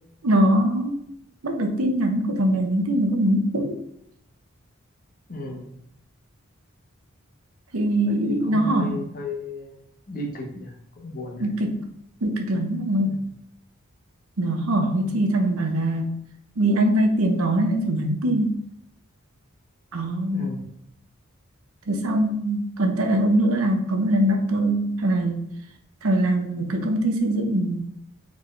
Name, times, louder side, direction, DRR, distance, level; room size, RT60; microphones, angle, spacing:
voice 1, 0.2-1.0 1.4-3.8 7.7-9.0 11.4-11.7 12.2-13.1 14.4-16.2 16.6-18.5 19.9-20.5 21.9-25.5 26.0-27.8, right 1 dB, 85° right, 4 dB, 0.8 m, -22 dB
voice 2, 5.3-5.7 8.0-9.8 10.1-11.5 13.0-13.2 20.3-20.7, left 2 dB, 40° left, 0 dB, 1.0 m, -35 dB
4.2 x 3.6 x 3.2 m, 0.77 s
head